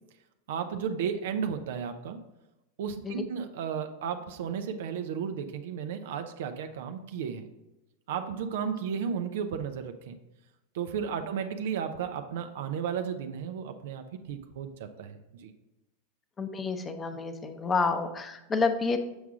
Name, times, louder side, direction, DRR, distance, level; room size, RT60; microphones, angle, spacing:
voice 1, 0.5-2.2 2.8-7.5 8.1-10.1 10.7-15.5, right 7 dB, 75° right, 7 dB, 0.5 m, -34 dB
voice 2, 16.4-19.0, left 4 dB, 20° left, 8 dB, 0.7 m, -29 dB
7.1 x 4.8 x 3.7 m, 0.97 s
hypercardioid pair, 115°, 0 cm